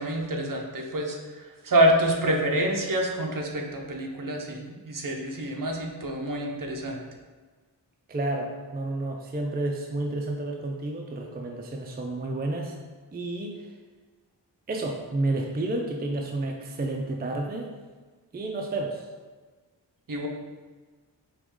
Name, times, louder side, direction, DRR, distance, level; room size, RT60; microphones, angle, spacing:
voice 1, 0.0-7.0 20.1-20.3, right 1 dB, 50° right, 2 dB, 0.7 m, -27 dB
voice 2, 8.1-12.7 13.1-13.7 14.7-17.7 18.3-19.1, right 2 dB, 25° right, 1 dB, 0.4 m, -30 dB
4.9 x 3.0 x 3.6 m, 1.4 s
wide cardioid pair, 85°, 43 cm